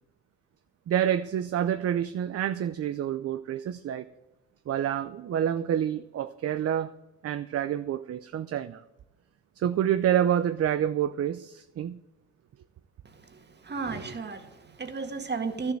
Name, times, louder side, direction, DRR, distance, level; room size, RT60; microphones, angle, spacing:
voice 1, 0.9-4.0 4.7-6.9 7.2-8.8 9.6-12.0, right 10 dB, 50° right, 11 dB, 0.6 m, -28 dB
voice 2, 13.3-15.7, right 4 dB, 35° right, 7 dB, 1.8 m, -34 dB
11.5 x 7.2 x 8.9 m, 0.98 s
cardioid pair, 90°, 30 cm